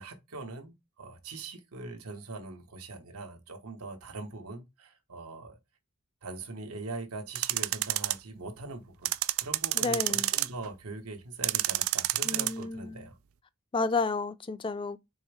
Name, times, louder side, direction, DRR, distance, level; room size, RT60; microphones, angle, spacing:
voice 1, 0.0-5.6 6.2-13.2, right 3 dB, 90° right, 1.1 m, -42 dB
sound 1, 7.3-8.1 9.0-10.7 11.4-12.5, right 17 dB, 70° right, 0.3 m, -28 dB
voice 2, 9.7-10.3 12.2-13.1 13.7-15.0, left 3 dB, 20° left, 0.3 m, -31 dB
4.5 x 3.4 x 3.3 m
head